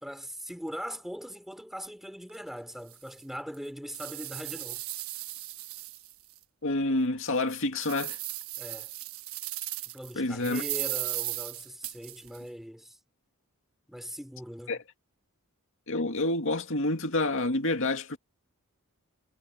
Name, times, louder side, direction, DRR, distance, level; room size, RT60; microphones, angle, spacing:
voice 1, 0.0-4.8 8.6-8.9 9.9-13.0 13.9-14.8, equal, ahead, 3.2 m, -41 dB
sound 1, 2.3-2.4 2.9-3.0 3.5-6.4 6.8-6.9 7.4-10.1 10.4-12.4, right 16 dB, 70° right, 1.3 m, -36 dB
voice 2, 6.6-8.2 10.1-10.6 14.7-14.8 15.9-18.2, left 2 dB, 60° left, 2.3 m, -28 dB
head